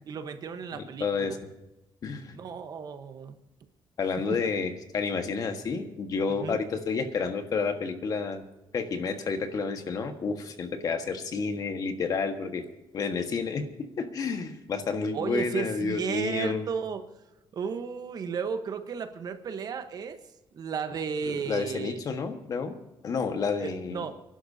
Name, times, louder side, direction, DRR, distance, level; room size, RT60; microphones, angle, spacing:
voice 1, 0.1-1.4 2.3-3.4 6.3-6.6 15.1-17.0 17.5-20.2 20.5-22.0 23.6-24.2, right 6 dB, 45° right, 8 dB, 1.1 m, -34 dB
voice 2, 0.7-1.4 2.0-2.3 4.0-8.4 8.7-12.7 12.9-16.7 21.3-22.8 23.0-24.0, left 5 dB, 45° left, 6 dB, 1.5 m, -30 dB
29.0 x 11.5 x 2.8 m, 0.96 s
cardioid pair, 155°, 9 cm